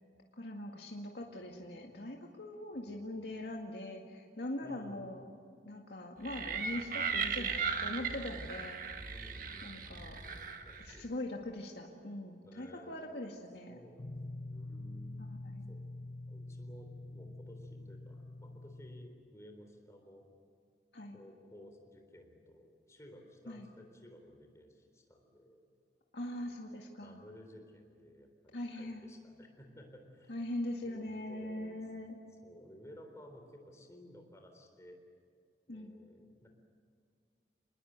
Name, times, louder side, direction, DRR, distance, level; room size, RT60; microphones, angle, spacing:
voice 1, 0.4-5.2 5.7-9.0 9.6-10.2 10.8-13.8 15.4-15.7 20.9-21.2 23.5-23.7 26.1-27.2 28.5-29.1 30.3-32.2 35.7-35.9, left 1 dB, 70° left, 0 dB, 2.0 m, -42 dB
voice 2, 1.2-2.1 2.7-3.4 4.6-5.1 9.1-10.0 10.6-11.0 12.4-13.3 13.7-14.2 14.4-15.3 15.7-15.8 16.3-20.3 21.1-25.6 26.3-26.6 27.0-30.4 30.8-32.1 32.4-35.0 35.7-36.5, equal, 15° left, 4 dB, 3.9 m, -56 dB
sound 1, 6.2-11.1, right 5 dB, 50° right, 1.7 m, -37 dB
sound 2, 14.0-19.1, left 2 dB, 45° left, 0.9 m, -46 dB
27.0 x 21.0 x 8.1 m, 2.2 s
head